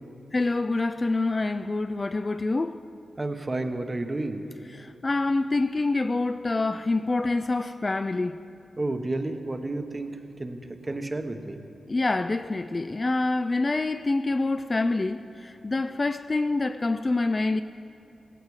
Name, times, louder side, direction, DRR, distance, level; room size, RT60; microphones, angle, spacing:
voice 1, 0.3-2.8 4.8-8.4 11.9-17.6, left 2 dB, 30° left, 0.3 m, -26 dB
voice 2, 3.2-4.4 8.8-11.6, right 2 dB, 25° right, 1.1 m, -31 dB
17.0 x 16.5 x 4.8 m
wide cardioid pair, 115°, 0 cm